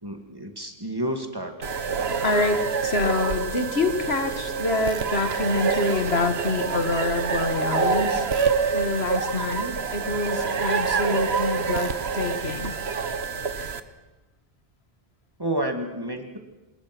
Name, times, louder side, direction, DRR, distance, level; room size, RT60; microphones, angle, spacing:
voice 1, 0.0-1.7 15.4-16.4, right 1 dB, 20° right, 5 dB, 2.1 m, -30 dB
sound 1, 1.6-13.8, right 5 dB, 80° right, 1.4 m, -26 dB
voice 2, 2.2-8.3 8.7-12.7, left 3 dB, 80° left, 7 dB, 2.1 m, -26 dB
26.0 x 21.0 x 6.1 m, 1.1 s
omnidirectional pair, 1.0 m